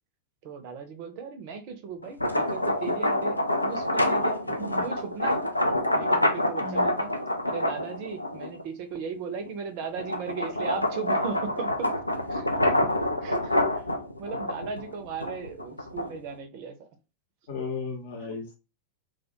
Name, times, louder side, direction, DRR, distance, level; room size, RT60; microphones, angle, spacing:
voice 1, 0.4-4.4 4.8-5.4 5.9-7.1 7.5-11.9 12.3-12.5 13.2-13.8 14.2-16.9 18.2-18.4, right 6 dB, 45° right, 7 dB, 0.5 m, -37 dB
sound 1, 2.0-8.6 9.2-16.3, left 1 dB, 85° left, 0.3 m, -27 dB
voice 2, 6.6-6.9 17.5-18.6, left 4 dB, 55° left, 2 dB, 0.7 m, -35 dB
2.2 x 2.2 x 2.8 m, 0.30 s
figure-of-eight pair, 90°, 0 cm